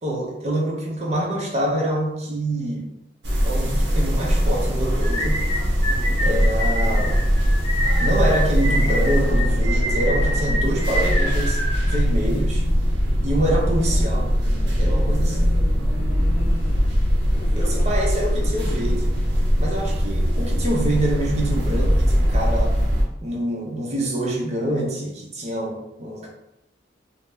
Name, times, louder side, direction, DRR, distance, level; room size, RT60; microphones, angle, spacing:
voice 1, 0.0-2.9 3.4-5.5 6.2-7.2 8.0-11.6 11.9-12.6 13.2-14.4 14.8-15.6 17.6-19.2 19.6-22.8 23.2-26.3, right 1 dB, 35° right, -2 dB, 0.7 m, -26 dB
sound 1, 3.2-23.0, equal, 65° right, 0.8 m, -21 dB
sound 2, 5.0-12.4, equal, 30° left, 0.8 m, -28 dB
voice 2, 16.0-17.0 17.3-17.9 18.1-18.7, left 1 dB, 50° left, 4 dB, 0.4 m, -39 dB
2.7 x 2.1 x 3.5 m, 0.85 s
head